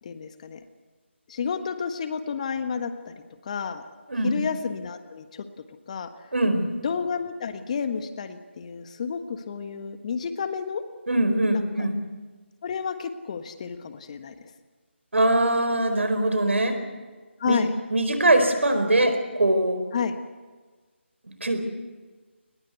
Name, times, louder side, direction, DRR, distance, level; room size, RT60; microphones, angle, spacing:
voice 1, 0.0-0.6 1.3-3.1 3.4-3.8 4.2-5.5 5.9-6.1 6.8-10.8 11.5-11.9 12.6-14.5 17.4-17.7 19.9-20.2, left 6 dB, 35° left, 9 dB, 1.4 m, -31 dB
voice 2, 6.3-6.7 11.1-12.0 15.1-16.8 17.4-17.6 17.9-19.8 21.2-21.6, right 1 dB, 75° right, 8 dB, 4.7 m, -22 dB
22.5 x 20.5 x 8.2 m, 1.4 s
figure-of-eight pair, 160°, 7 cm